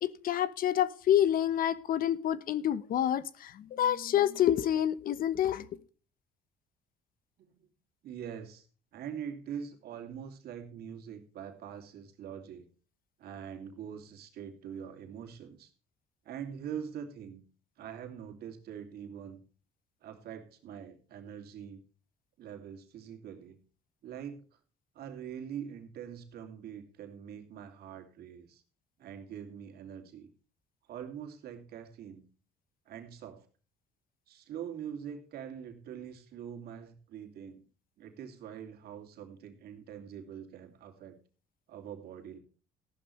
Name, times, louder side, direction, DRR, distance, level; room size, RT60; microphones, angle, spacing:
voice 1, 0.0-5.7, left 11 dB, 55° left, 1.0 m, -28 dB
voice 2, 8.0-8.7 8.9-12.7 13.2-15.7 16.2-17.4 17.8-19.4 20.0-21.8 22.4-23.6 24.0-24.4 24.9-28.6 29.0-30.3 30.9-32.2 32.9-33.5 34.3-37.6 38.0-41.2 41.7-42.4, right 8 dB, 70° right, 2.7 m, -44 dB
14.5 x 11.5 x 3.2 m
cardioid pair, 110°, 17 cm